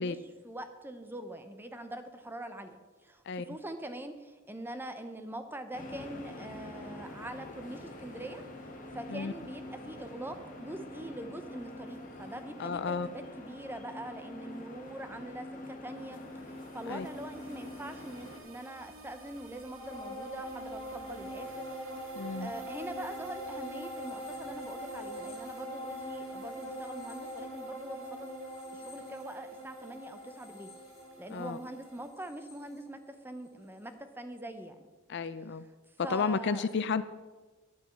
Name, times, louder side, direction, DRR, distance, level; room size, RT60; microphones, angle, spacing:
voice 1, 0.0-8.4 8.9-16.2 16.4-21.6 22.4-28.3 28.7-30.7 31.2-34.9 35.5-35.6 36.0-36.7, right 1 dB, 10° right, 8 dB, 0.7 m, -43 dB
sound 1, 5.7-18.4, left 1 dB, 40° left, 1.6 m, -45 dB
voice 2, 12.6-13.1 16.9-17.1 22.2-22.5 31.3-31.6 35.1-35.6 36.0-37.0, left 5 dB, 55° left, 14 dB, 0.4 m, -32 dB
sound 2, 15.9-32.1, right 3 dB, 70° right, 1.6 m, -53 dB
sound 3, 19.8-33.5 33.9-34.0, equal, 20° left, 3.1 m, -43 dB
10.5 x 6.1 x 7.2 m, 1.3 s
head